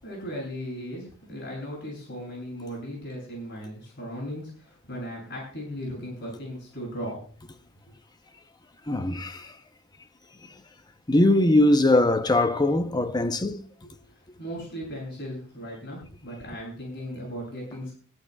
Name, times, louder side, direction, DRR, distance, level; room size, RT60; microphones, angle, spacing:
voice 1, 0.0-7.2 14.4-17.9, equal, 55° left, 7.8 m, -37 dB
voice 2, 8.9-9.6 10.4-10.5 11.1-13.6, left 1 dB, 20° left, 0.8 m, -21 dB
22.5 x 13.5 x 2.3 m
head